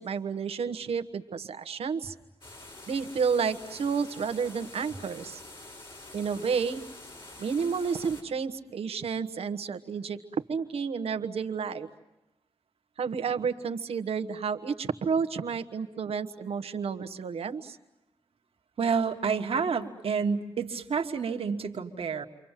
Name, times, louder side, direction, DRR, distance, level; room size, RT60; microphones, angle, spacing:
voice 1, 0.0-2.1 2.9-5.4 6.1-6.8 7.4-10.2 10.5-11.9 13.0-17.8, right 6 dB, 90° right, 9 dB, 1.3 m, -31 dB
sound 1, 2.4-8.2, left 2 dB, 55° left, 7.1 m, -47 dB
voice 2, 18.8-22.2, right 5 dB, 75° right, 3 dB, 1.8 m, -29 dB
30.0 x 24.5 x 7.5 m, 0.94 s
cardioid pair, 55°, 10 cm